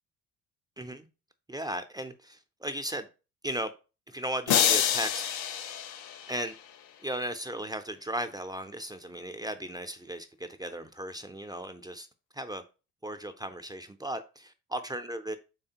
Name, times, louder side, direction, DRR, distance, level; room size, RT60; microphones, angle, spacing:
voice 1, 0.8-1.1 1.5-3.1 3.4-3.7 4.1-5.2 6.3-6.5 7.0-12.1 12.3-12.6 13.0-15.4, right 1 dB, 10° right, 0.3 m, -36 dB
sound 1, 4.5-6.8, left 9 dB, 60° left, 0.6 m, -27 dB
3.4 x 3.3 x 2.8 m
hypercardioid pair, 60°, 44 cm